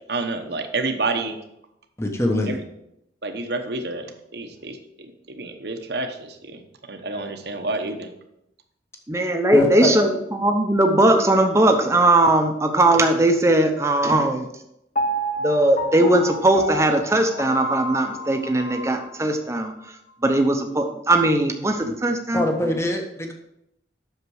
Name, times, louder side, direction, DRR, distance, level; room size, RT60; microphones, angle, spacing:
voice 1, 0.1-1.4 2.5-2.6 3.2-6.6 6.9-8.1, right 3 dB, 60° right, 6 dB, 1.0 m, -29 dB
voice 2, 2.0-2.6 9.5-9.9 21.8-21.9 22.3-23.3, left 1 dB, 15° left, 3 dB, 1.0 m, -22 dB
voice 3, 9.1-14.5 15.4-19.7 20.2-22.4, right 1 dB, 15° right, 5 dB, 0.8 m, -19 dB
Piano, 15.0-19.0 19.5-19.6, equal, 40° left, 0.7 m, -29 dB
8.1 x 6.6 x 4.8 m, 0.81 s
head